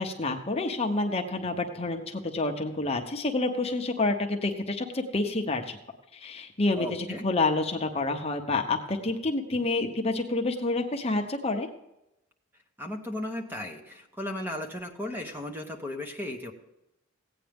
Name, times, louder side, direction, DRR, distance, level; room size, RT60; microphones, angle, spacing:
voice 1, 0.0-5.8 6.1-11.7, left 2 dB, 30° left, 4 dB, 0.9 m, -28 dB
voice 2, 6.8-7.2 12.8-16.5, left 1 dB, 10° right, 3 dB, 1.0 m, -35 dB
16.0 x 9.1 x 3.5 m, 0.88 s
head